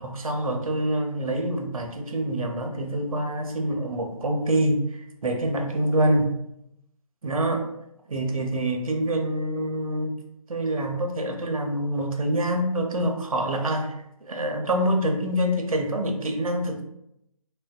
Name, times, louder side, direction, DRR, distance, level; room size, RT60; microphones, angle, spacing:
voice 1, 0.0-6.3 7.2-7.7 8.1-10.1 10.5-16.8, right 1 dB, 65° right, 4 dB, 0.6 m, -26 dB
3.3 x 2.2 x 2.2 m, 0.81 s
figure-of-eight pair, 170°, 19 cm